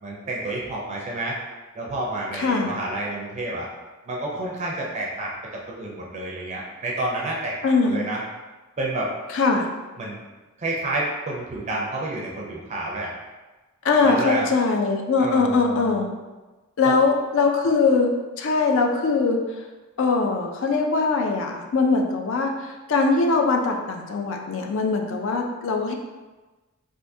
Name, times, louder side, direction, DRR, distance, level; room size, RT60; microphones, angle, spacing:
voice 1, 0.0-1.4 1.7-3.7 4.1-8.2 8.8-9.1 10.0-10.2 10.6-13.1 14.0-14.5 15.2-16.0 16.8-16.9, right 2 dB, 30° right, -3 dB, 0.4 m, -29 dB
voice 2, 2.3-2.7 7.6-8.0 9.3-9.7 13.8-16.1 16.8-18.1 18.4-19.4 20.0-25.9, left 4 dB, 60° left, 2 dB, 0.4 m, -21 dB
3.5 x 2.5 x 2.6 m, 1.2 s
head